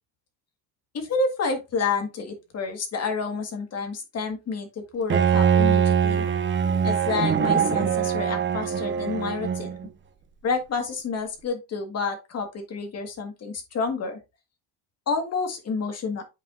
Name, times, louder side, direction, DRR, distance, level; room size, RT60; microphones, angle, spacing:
voice 1, 0.9-6.3 6.8-9.7 10.4-14.2 15.1-16.2, left 4 dB, 35° left, 5 dB, 1.7 m, -29 dB
Bowed string instrument, 5.1-9.9, right 7 dB, 30° right, 0.7 m, -22 dB
8.2 x 5.0 x 2.6 m, 0.25 s
cardioid pair, 145°, 43 cm